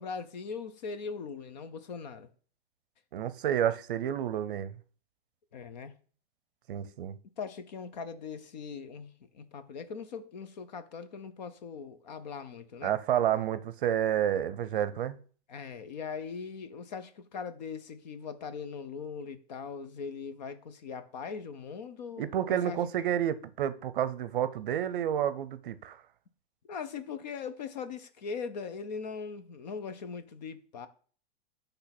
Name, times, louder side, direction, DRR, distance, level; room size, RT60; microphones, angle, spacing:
voice 1, 0.0-2.3 5.5-5.9 7.4-12.9 15.5-22.8 26.7-30.9, left 5 dB, 45° left, 0.7 m, -40 dB
voice 2, 3.1-4.8 6.7-7.2 12.8-15.2 22.2-26.0, right 10 dB, 55° right, 0.6 m, -30 dB
8.2 x 3.4 x 5.9 m
supercardioid pair, 180°, 31 cm